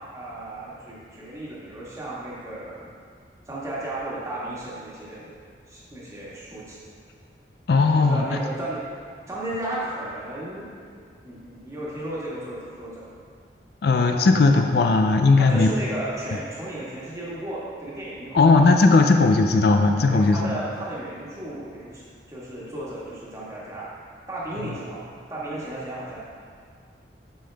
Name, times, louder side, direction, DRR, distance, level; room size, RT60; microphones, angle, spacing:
voice 1, 0.1-2.9 3.5-5.3 5.7-6.8 7.9-8.8 9.3-13.2 15.4-18.6 19.0-19.2 20.1-23.9 24.3-26.2, right 1 dB, 15° right, -7 dB, 1.5 m, -34 dB
voice 2, 7.7-8.4 13.8-15.7 18.3-20.5 24.6-24.7, left 3 dB, 55° left, 5 dB, 0.4 m, -17 dB
8.4 x 5.6 x 3.4 m, 2.1 s
head